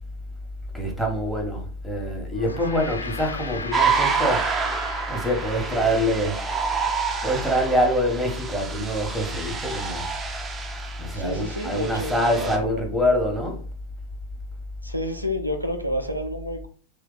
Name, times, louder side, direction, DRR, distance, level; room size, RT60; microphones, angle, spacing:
voice 1, 0.7-6.5 7.2-10.1 11.0-13.6, equal, ahead, 1.1 m, -25 dB
Gong, 2.3-6.9, left 4 dB, 70° left, 0.3 m, -38 dB
voice 2, 2.4-2.8 11.1-12.8 14.8-16.7, left 1 dB, 90° right, 0.5 m, -30 dB
sound 1, 3.7-12.6, right 5 dB, 15° right, 0.6 m, -28 dB
3.1 x 2.8 x 3.8 m
figure-of-eight pair, 90°, 0 cm